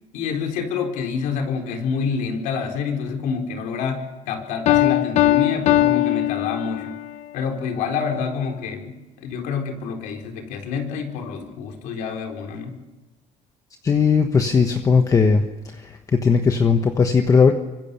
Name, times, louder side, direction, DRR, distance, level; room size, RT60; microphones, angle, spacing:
voice 1, 0.1-7.0 7.3-12.8, left 6 dB, 85° left, 3 dB, 4.2 m, -27 dB
Piano, 4.7-7.1, left 15 dB, 60° left, 1.0 m, -19 dB
voice 2, 13.8-15.4 15.7-17.5, left 5 dB, 25° left, 6 dB, 1.3 m, -18 dB
24.5 x 24.5 x 7.0 m, 1.1 s
cardioid pair, 150°, 13 cm